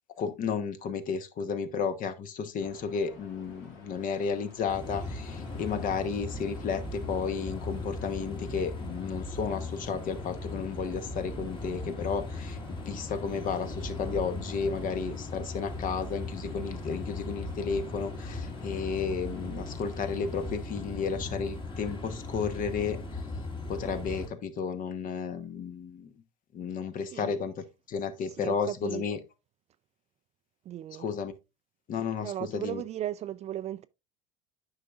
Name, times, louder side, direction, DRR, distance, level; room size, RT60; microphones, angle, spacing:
voice 1, 0.2-23.2 23.7-26.1 26.5-29.2 31.0-31.3 31.9-32.8, left 6 dB, 45° left, 1.1 m, -33 dB
sound 1, 2.6-20.5, left 3 dB, 65° left, 2.5 m, -52 dB
sound 2, 4.7-24.3, left 2 dB, 25° left, 1.7 m, -38 dB
voice 2, 27.1-27.4 28.4-29.0 30.7-31.0 32.2-33.9, right 12 dB, 35° right, 0.4 m, -36 dB
9.5 x 5.7 x 2.4 m
hypercardioid pair, 75°, 19 cm